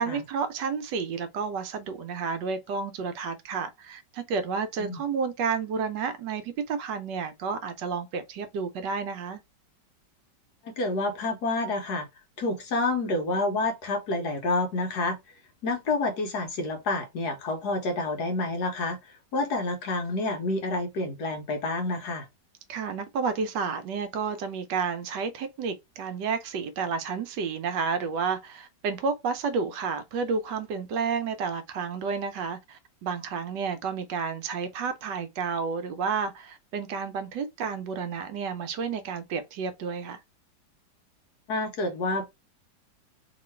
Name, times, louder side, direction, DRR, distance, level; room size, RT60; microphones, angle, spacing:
voice 1, 0.0-9.4 22.7-40.2, right 5 dB, 75° right, 1.2 m, -31 dB
voice 2, 10.6-12.1 12.4-15.2 15.6-22.3 41.5-42.3, left 2 dB, 65° left, 1.3 m, -28 dB
3.1 x 2.9 x 4.3 m
omnidirectional pair, 2.0 m